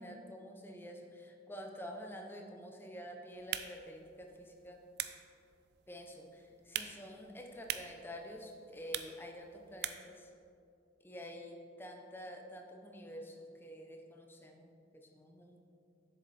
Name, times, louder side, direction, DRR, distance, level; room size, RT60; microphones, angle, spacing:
voice 1, 0.0-4.8 5.9-10.3 11.0-15.6, equal, 10° left, 3 dB, 0.6 m, -48 dB
sound 1, 3.3-10.2, right 11 dB, 60° right, 0.4 m, -45 dB
7.4 x 7.0 x 4.2 m, 2.5 s
head